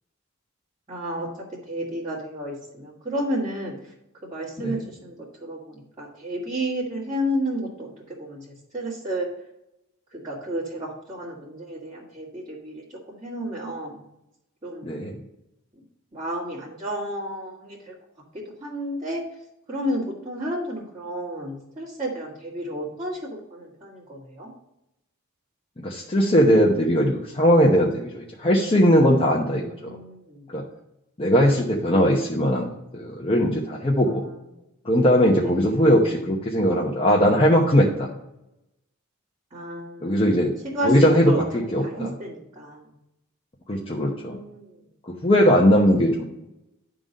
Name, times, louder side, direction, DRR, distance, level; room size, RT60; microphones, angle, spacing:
voice 1, 0.9-3.9 4.3-9.3 10.1-14.0 14.6-15.0 15.7-15.8 16.1-17.9 18.3-19.2 19.7-24.5 29.5-30.4 34.0-34.2 35.4-35.5 39.5-40.2 40.7-41.4 41.8-42.9 43.8-44.8, equal, 25° right, -9 dB, 2.1 m, -32 dB
voice 2, 14.8-15.2 25.8-30.0 30.5-30.6 31.2-34.2 34.8-38.1 40.0-40.5 40.8-42.1 43.7-44.4 45.0-46.2, equal, 25° left, -2 dB, 0.9 m, -20 dB
10.5 x 3.8 x 5.3 m, 0.85 s
head